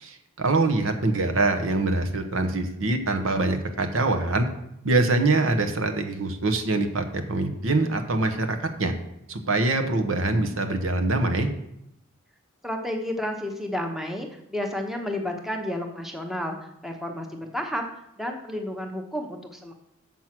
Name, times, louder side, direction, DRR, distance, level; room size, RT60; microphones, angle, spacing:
voice 1, 0.4-4.5 4.8-8.9 9.3-11.5, right 2 dB, 85° right, 6 dB, 1.0 m, -24 dB
voice 2, 12.6-16.6 16.8-17.8 18.2-19.7, left 1 dB, ahead, 3 dB, 0.8 m, -31 dB
7.3 x 6.2 x 6.0 m, 0.81 s
head